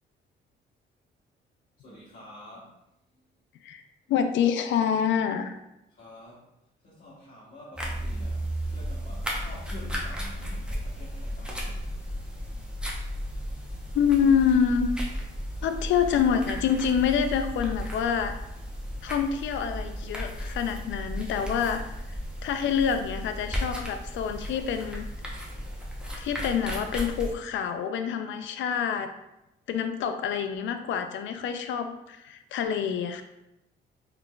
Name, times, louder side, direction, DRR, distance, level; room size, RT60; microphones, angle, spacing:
voice 1, 1.8-2.8 3.1-3.3 5.9-6.5 6.8-11.9, left 2 dB, 45° left, -8 dB, 1.1 m, -48 dB
voice 2, 4.1-5.5 13.9-14.9 15.6-18.4 19.0-21.8 22.4-25.1 26.2-29.1 29.7-33.2, left 7 dB, 70° left, 8 dB, 0.4 m, -26 dB
sound 1, 7.7-27.3, equal, 5° right, 0.8 m, -34 dB
3.8 x 3.2 x 2.3 m, 0.90 s
cardioid pair, 90°, 20 cm